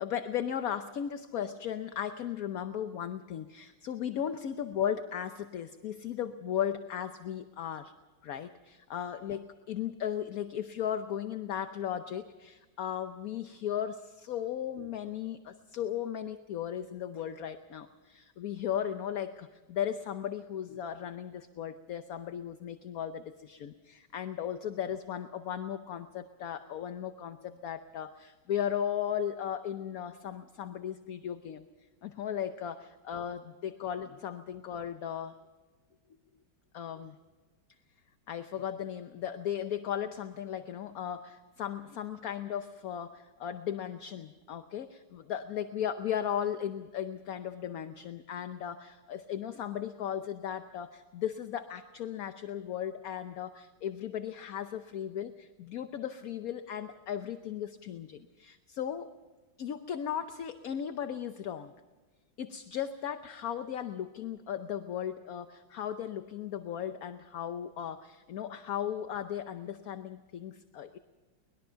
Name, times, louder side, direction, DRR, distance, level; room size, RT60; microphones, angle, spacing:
voice 1, 0.0-7.9 8.2-31.7 32.0-35.4 36.7-37.1 38.3-59.1 59.6-61.7 62.4-71.0, left 9 dB, 60° left, 9 dB, 1.1 m, -36 dB
23.5 x 20.5 x 5.7 m, 1.3 s
omnidirectional pair, 1.9 m